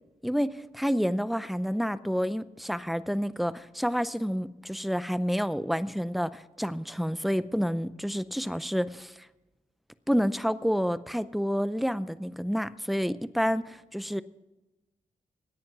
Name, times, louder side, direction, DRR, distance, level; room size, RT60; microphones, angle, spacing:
voice 1, 0.2-9.1 10.1-14.2, equal, ahead, 15 dB, 0.5 m, -29 dB
17.5 x 10.5 x 5.9 m, 1.1 s
wide cardioid pair, 130°, 14 cm